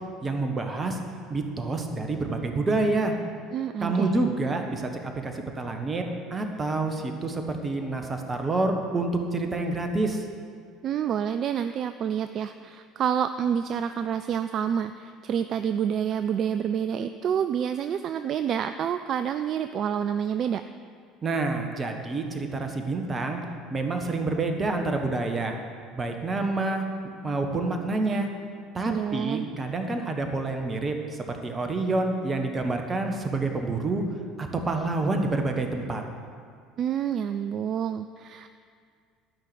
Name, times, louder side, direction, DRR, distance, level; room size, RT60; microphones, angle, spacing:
voice 1, 0.2-1.0 1.3-3.1 3.8-6.0 6.3-10.2 21.2-23.4 23.7-25.5 25.9-26.8 27.2-28.3 28.7-34.0 34.4-36.0, right 3 dB, 25° right, 4 dB, 1.4 m, -28 dB
voice 2, 3.5-4.2 10.8-20.6 28.8-29.5 36.8-38.5, right 8 dB, 45° right, 10 dB, 0.3 m, -28 dB
12.0 x 5.9 x 7.9 m, 2.2 s
figure-of-eight pair, 60°, 0 cm